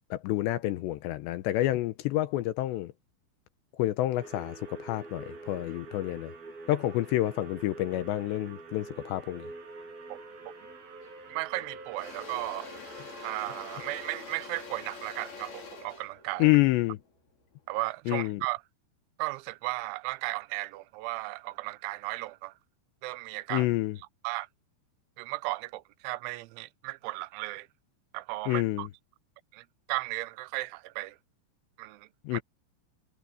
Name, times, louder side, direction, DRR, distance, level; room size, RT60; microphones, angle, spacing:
voice 1, 0.1-2.9 3.8-6.3 6.7-9.5 16.4-17.0 18.1-18.4 23.5-24.0 28.5-28.9 32.2-32.4, left 16 dB, 75° left, 2.7 m, -28 dB
sound 1, 4.2-14.1, right 3 dB, 50° right, 7.6 m, -46 dB
Engine / Drill, 11.0-11.2 11.6-17.7, left 5 dB, 50° left, 6.2 m, -46 dB
voice 2, 11.3-12.7 13.2-16.5 17.7-18.6 19.2-22.5 23.0-23.7 24.2-24.5 25.2-27.7 28.1-28.9 29.5-31.2 31.8-32.4, right 21 dB, 80° right, 3.1 m, -35 dB
omnidirectional pair, 5.6 m